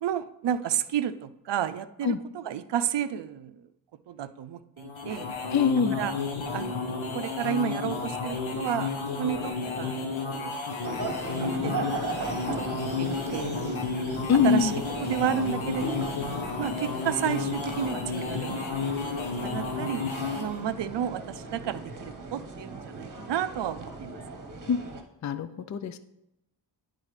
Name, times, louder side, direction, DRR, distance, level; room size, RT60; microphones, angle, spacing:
voice 1, 0.0-3.7 4.1-5.3 6.0-6.1 6.5-8.9 9.2-10.6 11.3-11.7 12.3-14.1 14.4-14.7 15.0-16.1 16.6-18.8 19.4-24.2, right 9 dB, 65° right, 13 dB, 0.5 m, -32 dB
sound 1, 4.8-20.6, left 4 dB, 90° left, 1.0 m, -32 dB
voice 2, 5.5-6.0 14.3-14.7 24.7-24.8 25.2-26.0, left 6 dB, 40° left, 12 dB, 0.4 m, -23 dB
sound 2, 10.8-25.0, right 3 dB, 40° right, 1.0 m, -38 dB
10.5 x 4.1 x 3.2 m, 0.86 s
cardioid pair, 45°, 46 cm